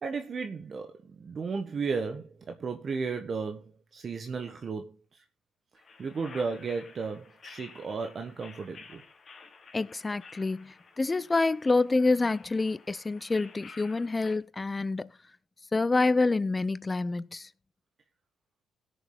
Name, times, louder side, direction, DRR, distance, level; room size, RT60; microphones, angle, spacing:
voice 1, 0.0-5.0 6.0-9.0, right 4 dB, 45° right, 1.4 m, -34 dB
sound 1, 5.8-14.4, left 4 dB, 40° left, 2.7 m, -52 dB
voice 2, 9.7-15.1 15.7-17.5, left 3 dB, 25° left, 0.6 m, -27 dB
17.0 x 6.9 x 4.0 m
cardioid pair, 90°, 0 cm